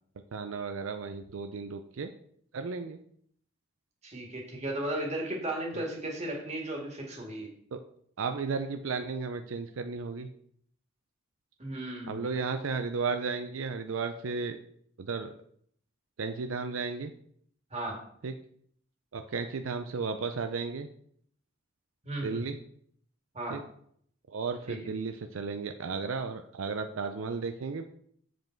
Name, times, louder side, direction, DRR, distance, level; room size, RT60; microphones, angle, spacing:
voice 1, 0.3-2.1 2.5-3.0 7.7-7.8 8.2-10.3 12.1-14.6 15.0-15.3 16.2-17.1 18.2-18.3 19.1-20.9 22.2-22.6 23.5-23.6 24.3-27.8, right 4 dB, 80° right, 7 dB, 0.5 m, -34 dB
voice 2, 4.0-7.5 11.6-12.2 17.7-18.0 22.0-22.4 23.3-23.6 24.7-24.8, right 1 dB, 35° right, 0 dB, 2.0 m, -35 dB
7.6 x 5.2 x 4.5 m, 0.64 s
head